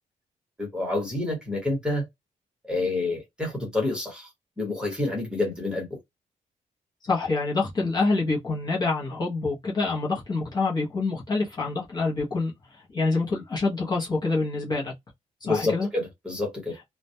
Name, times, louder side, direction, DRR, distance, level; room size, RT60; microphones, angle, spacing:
voice 1, 0.6-2.1 2.6-4.3 4.6-6.0 15.4-16.8, left 2 dB, 5° right, 1.0 m, -28 dB
voice 2, 7.0-12.5 12.9-14.9 15.4-15.9, left 3 dB, 30° left, 0.7 m, -26 dB
2.1 x 2.1 x 2.6 m
wide cardioid pair, 175°, 14 cm